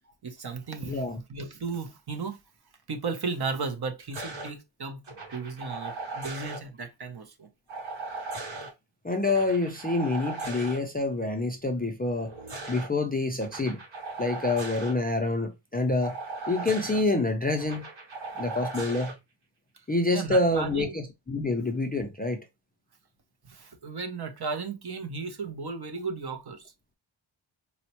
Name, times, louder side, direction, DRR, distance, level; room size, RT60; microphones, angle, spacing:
voice 1, 0.2-2.4 2.9-5.0 5.3-7.5 20.1-21.0 23.5-26.7, right 4 dB, 50° right, 0.7 m, -35 dB
voice 2, 0.9-1.2 9.0-12.3 12.7-13.8 14.2-16.1 16.5-17.8 18.4-19.1 19.9-22.4, left 2 dB, 20° left, 0.3 m, -27 dB
sound 1, 4.1-4.5 5.0-6.6 7.7-8.7 9.2-10.8 12.1-12.9 13.4-14.9 16.0-17.0 17.6-19.1 20.4-20.8, right 3 dB, 70° right, 1.2 m, -38 dB
4.1 x 2.1 x 2.8 m
wide cardioid pair, 115°, 49 cm